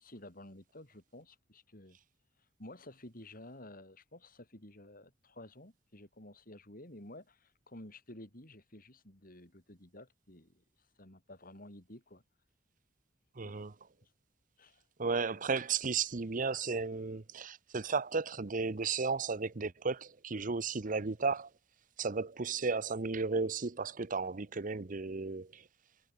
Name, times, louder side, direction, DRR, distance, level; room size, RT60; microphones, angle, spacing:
voice 1, 0.0-2.0 2.6-10.6 11.0-12.2 13.4-13.5 14.0-14.1 14.6-14.8, left 1 dB, 50° left, 7.1 m, -52 dB
voice 2, 13.4-13.7 15.0-21.5 22.0-25.6, right 4 dB, 45° right, 0.8 m, -34 dB
head